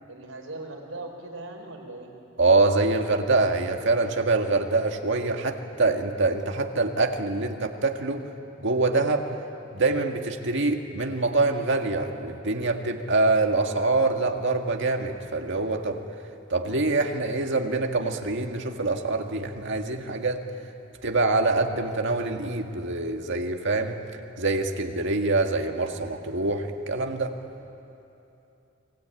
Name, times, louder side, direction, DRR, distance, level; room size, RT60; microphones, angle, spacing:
voice 1, 0.1-2.1, right 2 dB, 90° right, 2 dB, 4.5 m, -39 dB
voice 2, 2.4-8.2 8.6-9.2 9.7-16.0 16.5-20.4 21.0-24.0 24.4-27.3, right 3 dB, 65° right, 4 dB, 1.9 m, -25 dB
30.0 x 21.5 x 9.1 m, 2.8 s
head